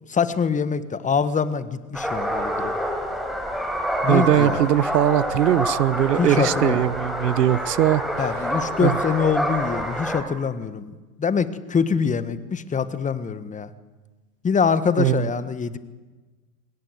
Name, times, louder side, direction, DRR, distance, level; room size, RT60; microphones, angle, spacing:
voice 1, 0.1-2.7 4.0-4.6 6.2-6.8 8.2-13.7 14.4-15.8, left 6 dB, 15° left, 13 dB, 1.6 m, -24 dB
sound 1, 1.9-10.2, equal, ahead, 4.7 m, -27 dB
voice 2, 4.1-8.0 8.8-9.0 15.0-15.3, right 12 dB, 80° right, 20 dB, 1.1 m, -20 dB
26.5 x 20.5 x 8.1 m, 1.3 s
hypercardioid pair, 115°, 48 cm